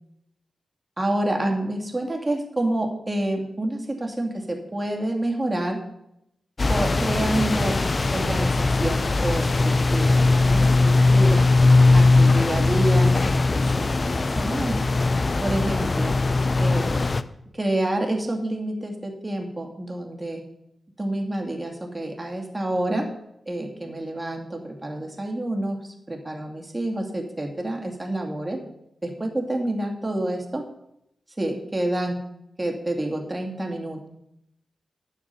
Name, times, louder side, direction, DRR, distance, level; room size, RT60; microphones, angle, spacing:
voice 1, 1.0-5.8 6.7-7.8 8.1-11.5 11.9-14.9 15.4-16.2 16.6-17.1 17.5-20.4 21.0-23.1 23.5-25.8 26.1-28.6 29.0-30.6 31.4-32.2 32.6-34.1, right 1 dB, 25° right, 1 dB, 2.4 m, -28 dB
sound 1, 6.6-17.2, left 3 dB, 45° left, 0.6 m, -20 dB
9.6 x 7.4 x 6.9 m, 0.80 s
cardioid pair, 55°, 0 cm